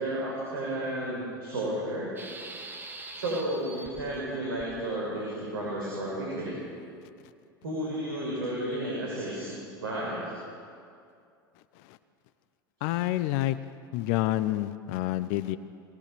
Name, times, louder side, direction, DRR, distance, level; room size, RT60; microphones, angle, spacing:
voice 1, 0.0-2.1 3.1-6.5 7.6-10.3 12.8-12.9, right 1 dB, 75° right, -5 dB, 6.5 m, -32 dB
sound 1, 2.2-4.0 4.6-4.7, right 2 dB, 15° right, 3.1 m, -42 dB
voice 2, 12.8-13.6 13.9-15.6, left 15 dB, 55° left, 14 dB, 0.8 m, -28 dB
24.0 x 19.5 x 6.9 m, 2.4 s
hypercardioid pair, 80°, 12 cm